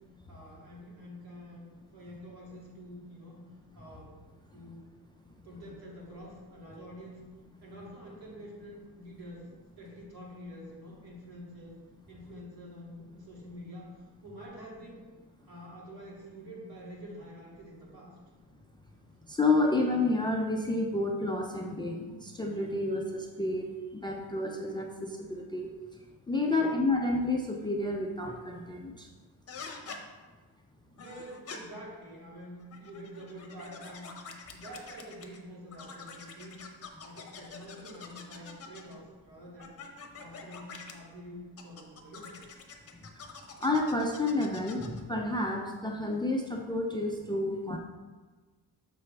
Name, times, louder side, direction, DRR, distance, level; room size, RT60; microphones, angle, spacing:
voice 1, 0.3-3.4 3.7-4.2 4.5-4.9 5.4-7.2 7.6-9.5 9.8-11.7 12.1-14.0 14.2-15.1 15.4-18.2 26.3-26.8 30.9-34.1 34.5-36.6 37.0-39.8 40.2-42.6, equal, 65° right, -3 dB, 2.1 m, -47 dB
voice 2, 19.3-25.7 26.3-29.1 42.9-43.0 43.6-47.8, left 2 dB, 10° left, 1 dB, 0.3 m, -30 dB
sound 1, 29.5-30.0 31.0-31.6 32.6-35.4 35.7-39.0 39.6-40.9 41.6-45.0, left 5 dB, 35° left, 0.8 m, -46 dB
6.8 x 5.7 x 3.2 m, 1.3 s
cardioid pair, 150°, 39 cm